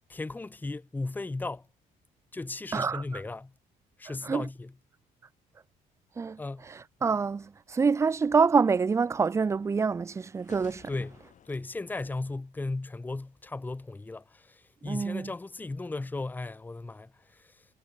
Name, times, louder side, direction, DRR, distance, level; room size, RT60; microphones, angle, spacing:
voice 1, 0.1-1.7 2.3-3.5 4.0-4.7 6.4-6.7 10.9-11.2 11.5-17.6, left 2 dB, 10° left, 0.7 m, -36 dB
voice 2, 2.7-3.0 4.2-4.4 6.2-6.4 7.0-10.9 14.8-15.3, right 5 dB, 15° right, 0.4 m, -26 dB
sound 1, 10.3-13.2, left 8 dB, 45° left, 4.5 m, -57 dB
cardioid pair, 110°, 17 cm